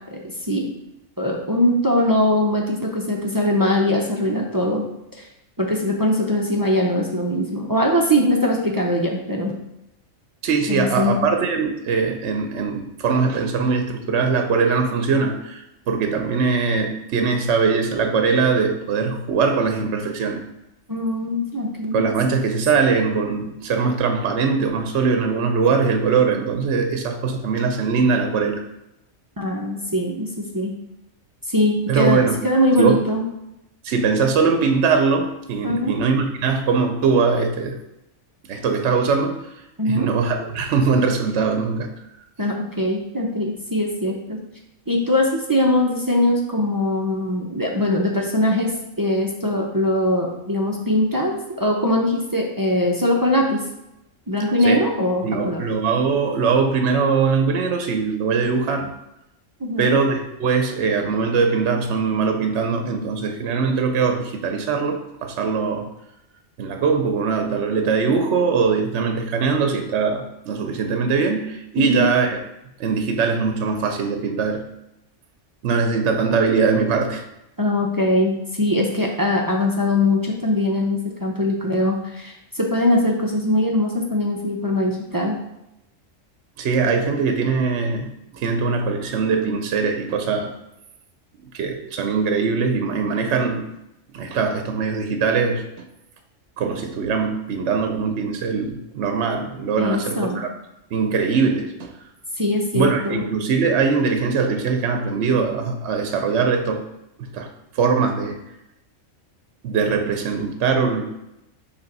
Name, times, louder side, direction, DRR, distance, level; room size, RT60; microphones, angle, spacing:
voice 1, 0.1-0.6 1.2-4.8 5.2-5.3 5.6-9.5 10.7-11.3 20.9-22.0 29.4-30.7 31.5-33.2 35.6-36.0 39.8-40.1 42.4-44.4 44.9-53.6 54.3-55.6 59.6-60.0 71.8-72.1 77.6-85.4 99.8-100.4 102.4-103.2, left 1 dB, 25° right, -1 dB, 0.4 m, -21 dB
voice 2, 10.4-20.4 21.9-28.6 31.9-32.4 32.8-33.0 33.8-37.8 38.5-39.5 39.8-41.9 54.6-54.9 55.2-58.9 59.8-65.9 66.6-72.4 72.8-74.6 75.6-77.2 86.6-90.5 91.5-93.6 94.1-95.8 96.6-100.5 100.9-101.9 102.7-106.8 107.2-107.5 107.7-108.4 109.6-111.0, right 5 dB, 65° right, 5 dB, 0.9 m, -21 dB
5.4 x 3.4 x 5.3 m, 0.88 s
omnidirectional pair, 1.4 m